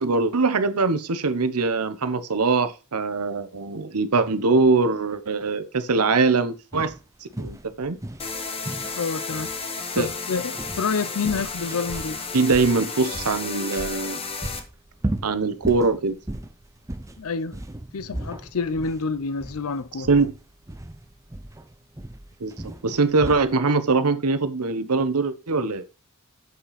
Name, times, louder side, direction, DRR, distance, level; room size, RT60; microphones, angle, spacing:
voice 1, 0.0-6.9 7.4-8.0 10.0-10.1 12.3-14.2 15.2-16.2 20.1-20.3 22.4-25.8, right 3 dB, 90° right, 0.9 m, -22 dB
sound 1, 6.7-23.6, right 1 dB, 15° right, 0.7 m, -36 dB
sound 2, 8.2-14.6, left 4 dB, 25° left, 1.1 m, -33 dB
voice 2, 9.0-9.5 9.9-12.2 17.2-17.6 17.9-20.1, left 4 dB, 70° left, 0.6 m, -28 dB
7.4 x 5.8 x 4.2 m
head